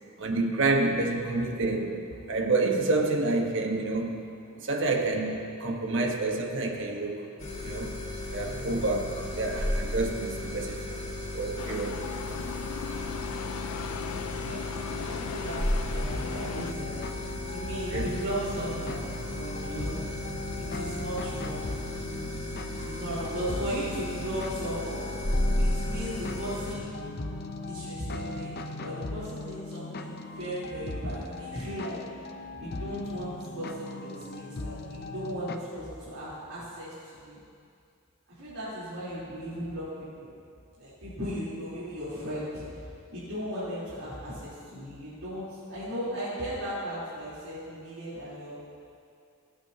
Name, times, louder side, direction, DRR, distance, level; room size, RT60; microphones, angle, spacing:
voice 1, 0.2-2.0 2.3-4.2 4.6-7.3 7.6-8.0 8.3-11.0 11.3-12.0 17.9-18.1, right 2 dB, 60° right, 2 dB, 1.3 m, -28 dB
sound 1, 7.4-26.7, left 1 dB, 30° left, 2.4 m, -34 dB
sound 2, 11.6-16.7, left 8 dB, 75° left, 0.3 m, -38 dB
voice 2, 14.5-17.2 17.5-20.0 20.5-21.7 22.8-25.1 25.6-26.9 27.7-32.0 32.5-37.4 38.4-40.3 40.8-48.6, equal, 90° right, -13 dB, 3.6 m, -37 dB
sound 3, 16.1-35.6, left 2 dB, 45° left, 0.7 m, -39 dB
26.5 x 8.9 x 2.9 m, 2.4 s
head